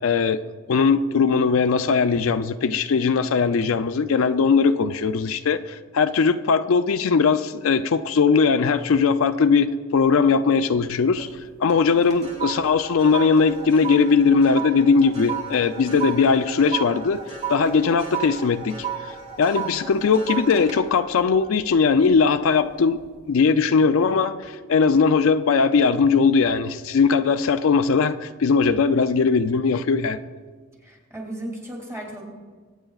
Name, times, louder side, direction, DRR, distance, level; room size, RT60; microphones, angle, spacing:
voice 1, 0.0-0.4 0.7-11.3 11.6-17.2 17.5-18.7 19.4-23.0 23.3-30.2, left 5 dB, 70° left, 10 dB, 0.4 m, -19 dB
sound 1, 10.9-11.4 11.7-22.3 22.7-23.0, right 7 dB, 30° right, 1.8 m, -34 dB
voice 2, 30.8-32.2, right 1 dB, 15° right, -1 dB, 2.5 m, -35 dB
23.5 x 8.9 x 2.4 m, 1.5 s
head